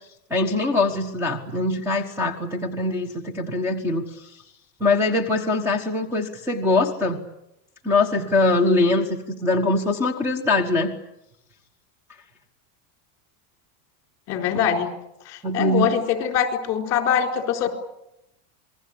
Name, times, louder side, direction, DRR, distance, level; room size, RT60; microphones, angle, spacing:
voice 1, 0.3-4.3 4.8-7.2 7.8-10.9 15.4-15.9, left 2 dB, 5° right, 6 dB, 1.4 m, -22 dB
voice 2, 14.3-14.9 15.3-17.8, left 8 dB, 35° left, 5 dB, 4.0 m, -23 dB
27.5 x 21.0 x 8.6 m, 0.84 s
supercardioid pair, 175°, 45 cm